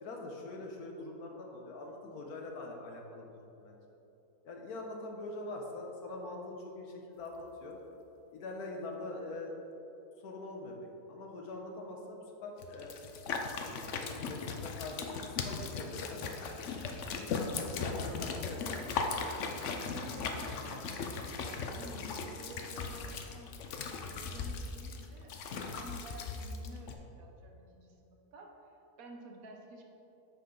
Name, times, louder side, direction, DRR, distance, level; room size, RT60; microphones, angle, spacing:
voice 1, 0.0-3.8 4.4-7.8 8.3-9.5 10.2-10.8 11.1-13.0 13.6-16.5 17.4-18.8, left 2 dB, 80° left, 1 dB, 1.5 m, -44 dB
sound 1, 12.6-26.9, left 4 dB, 60° left, 0.9 m, -38 dB
voice 2, 19.6-23.6 24.0-29.8, right 2 dB, 70° right, 2 dB, 1.3 m, -52 dB
8.5 x 6.4 x 3.9 m, 3.0 s
omnidirectional pair, 1.6 m